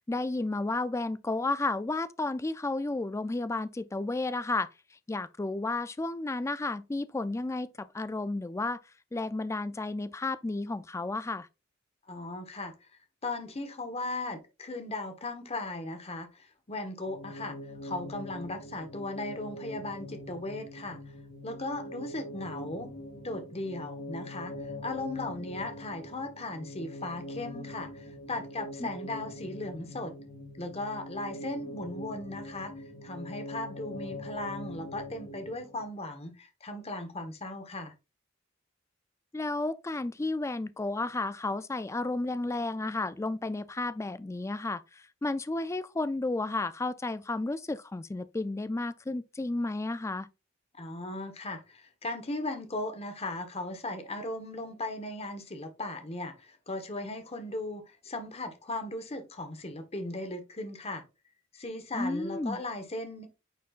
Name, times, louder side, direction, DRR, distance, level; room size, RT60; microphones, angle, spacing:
voice 1, 0.1-4.7 5.1-8.8 9.1-11.5 28.8-28.9 39.3-50.3 61.9-62.6, left 2 dB, 15° left, 0.3 m, -32 dB
voice 2, 12.1-12.9 13.2-17.6 17.8-21.0 21.4-22.9 23.2-24.5 24.8-30.1 30.5-37.9 50.7-61.0 61.5-63.3, left 2 dB, 30° left, 1.2 m, -37 dB
sound 1, 17.0-35.9, left 1 dB, 90° left, 3.6 m, -43 dB
9.2 x 4.3 x 2.4 m
head